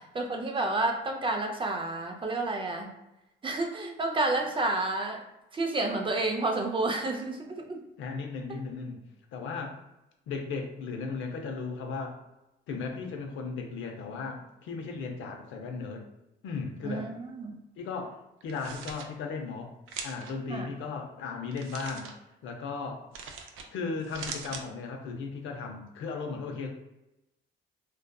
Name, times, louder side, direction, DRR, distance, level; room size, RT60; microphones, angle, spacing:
voice 1, 0.1-2.9 3.4-5.2 5.5-7.8 16.8-17.6 20.5-20.7, right 2 dB, 25° right, 2 dB, 0.5 m, -30 dB
voice 2, 8.0-9.0 9.3-9.8 10.3-12.2 12.7-16.0 16.4-17.1 17.8-18.2 18.4-19.7 20.0-22.1 22.4-23.0 23.7-26.7, left 4 dB, 80° left, 2 dB, 0.5 m, -36 dB
sound 1, 18.4-19.1 19.9-20.3 21.5-22.1 23.1-23.7 24.0-24.6, right 5 dB, 85° right, 0.4 m, -41 dB
2.5 x 2.3 x 2.2 m, 0.93 s
cardioid pair, 90°, 20 cm